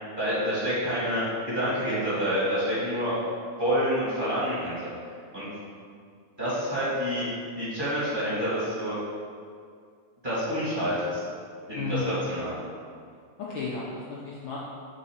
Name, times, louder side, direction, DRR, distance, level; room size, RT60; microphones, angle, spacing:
voice 1, 0.2-1.2 1.5-3.2 3.6-4.9 5.3-5.5 6.4-7.2 7.6-9.0 10.2-11.2 11.7-12.6, equal, 20° right, -11 dB, 1.4 m, -28 dB
voice 2, 11.7-12.3 13.4-14.6, left 4 dB, 90° left, -6 dB, 1.1 m, -33 dB
7.1 x 4.0 x 4.5 m, 2.2 s
omnidirectional pair, 3.3 m